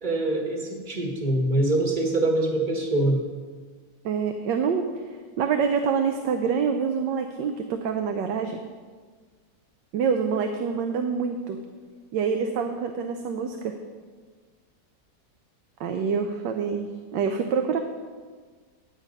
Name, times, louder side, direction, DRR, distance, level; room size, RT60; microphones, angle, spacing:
voice 1, 0.0-3.2, right 2 dB, 30° right, 1 dB, 1.5 m, -24 dB
voice 2, 4.0-4.8 5.4-8.6 9.9-11.6 12.1-13.8 15.8-17.8, right 6 dB, 90° right, 6 dB, 1.3 m, -26 dB
9.8 x 8.6 x 5.3 m, 1.5 s
omnidirectional pair, 1.9 m